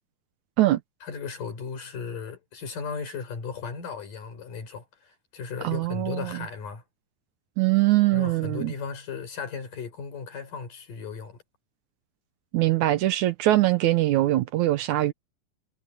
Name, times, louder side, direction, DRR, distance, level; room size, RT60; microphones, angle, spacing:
voice 1, 1.0-6.8 8.1-11.4, left 5 dB, 75° left, 6.1 m, -36 dB
voice 2, 5.6-6.3 7.6-8.7 12.5-15.1, right 16 dB, 75° right, 2.1 m, -22 dB
omnidirectional pair, 3.8 m